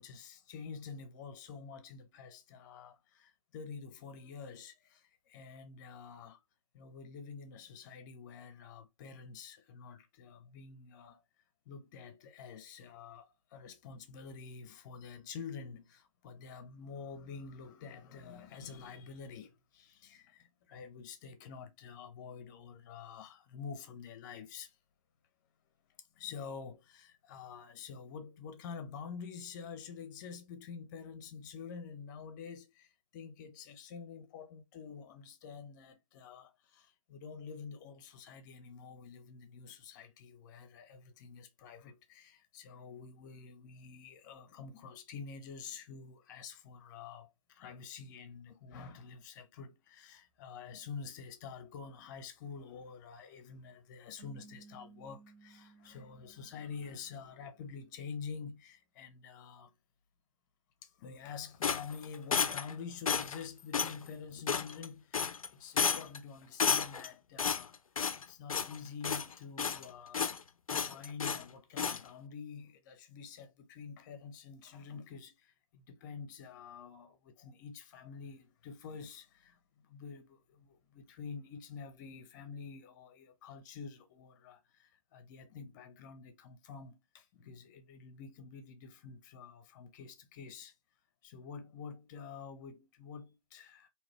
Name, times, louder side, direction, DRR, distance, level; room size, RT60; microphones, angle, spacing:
voice 1, 0.0-6.4 6.7-11.2 11.7-24.8 26.2-59.7 60.8-67.8 68.3-70.3 70.7-90.7 91.2-93.9, left 6 dB, 35° left, 0.8 m, -48 dB
sound 1, 54.2-57.5, right 4 dB, 50° right, 1.0 m, -59 dB
sound 2, 61.6-62.7 63.1-63.4 63.7-64.0 64.5-64.9 65.1-65.5 65.8-66.2 66.6-67.1 67.4-68.2 68.5-68.8 69.0-69.9 70.1-70.4 70.7-71.4 71.8-72.0, left 6 dB, 75° left, 0.5 m, -32 dB
3.9 x 2.9 x 3.1 m
figure-of-eight pair, 130°, 18 cm